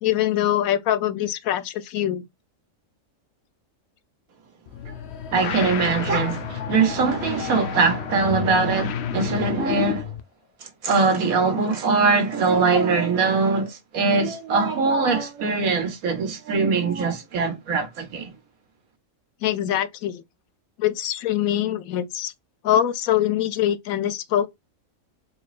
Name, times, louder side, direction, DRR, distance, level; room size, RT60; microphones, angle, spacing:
voice 1, 0.0-2.2 19.4-20.2 20.8-22.3 22.6-24.5, left 11 dB, 85° left, 1.1 m, -23 dB
sound 1, 4.7-10.2, left 9 dB, 65° left, 0.7 m, -30 dB
voice 2, 5.3-10.1 10.8-18.3, right 4 dB, 90° right, 1.6 m, -22 dB
4.3 x 3.1 x 2.4 m
omnidirectional pair, 1.4 m